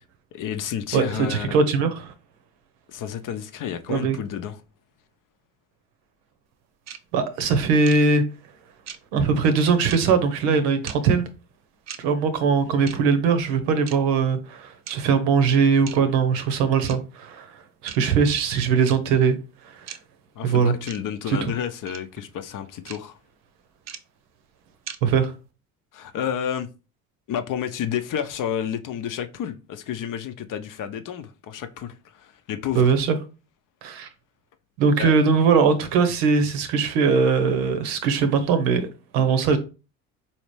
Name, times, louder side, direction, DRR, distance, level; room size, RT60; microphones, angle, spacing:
voice 1, 0.3-1.6 2.9-4.6 20.4-23.2 25.9-26.7 27.3-32.9 35.0-35.2, left 9 dB, 50° left, 0.6 m, -30 dB
voice 2, 0.9-2.1 3.9-4.2 7.1-8.2 9.1-11.2 12.0-17.5 17.8-19.4 20.4-20.7 21.3-21.5 25.0-25.3 32.7-33.2 33.8-34.1 34.8-38.9 39.1-39.6, right 5 dB, 80° right, 0.8 m, -20 dB
sound 1, 6.9-7.0 7.9-8.0 8.9-9.0 9.9-10.0 10.9-11.0 11.9-12.0 12.9-13.0 13.9-14.0 14.9-15.0 15.9-16.0 16.9-17.0 17.9-18.0 18.9-19.0 19.9-20.0 20.9-21.0 21.9-22.0 22.9-23.0 23.9-24.0 24.9-25.0, right 8 dB, 40° right, 0.6 m, -37 dB
4.2 x 2.8 x 3.1 m
hypercardioid pair, 65°, 41 cm